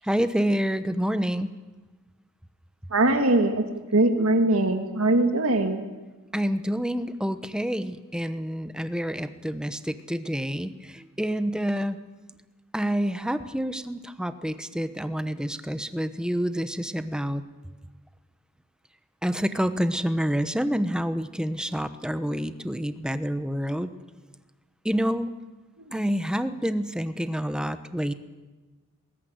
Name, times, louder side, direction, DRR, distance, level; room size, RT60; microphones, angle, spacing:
voice 1, 0.0-1.5 6.3-12.0 12.7-17.4 19.2-23.9 24.8-25.3 25.9-28.1, equal, 5° right, 11 dB, 1.0 m, -28 dB
voice 2, 2.9-3.7 3.9-5.8 25.8-26.1, right 2 dB, 90° right, 5 dB, 1.9 m, -22 dB
20.5 x 17.5 x 9.5 m, 1.2 s
head